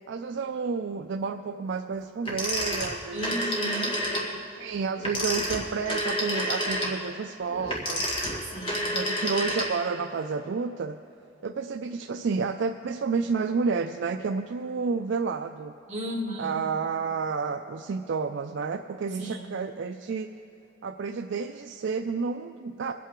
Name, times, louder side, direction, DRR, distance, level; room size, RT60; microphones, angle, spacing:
voice 1, 0.1-3.5 4.3-8.1 8.9-11.0 11.4-15.8 16.4-20.3 20.8-22.9, right 5 dB, 65° right, 6 dB, 0.4 m, -30 dB
Telephone, 2.2-4.3 5.0-10.0, equal, 30° left, 1.8 m, -29 dB
voice 2, 3.1-4.0 8.4-9.0 15.9-16.6 19.1-19.5, right 1 dB, 35° right, -4 dB, 2.4 m, -35 dB
23.5 x 8.4 x 3.7 m, 2.9 s
head